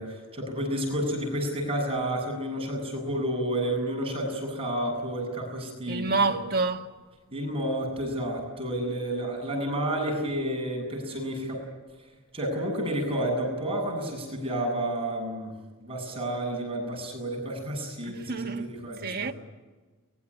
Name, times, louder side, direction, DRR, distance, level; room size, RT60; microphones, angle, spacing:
voice 1, 0.0-6.3 7.3-11.6 12.3-15.5 15.8-19.3, right 1 dB, 25° right, 7.9 m, -30 dB
voice 2, 5.9-6.9 18.0-18.7 19.0-19.3, right 3 dB, 45° right, 1.6 m, -28 dB
23.5 x 22.0 x 10.0 m
head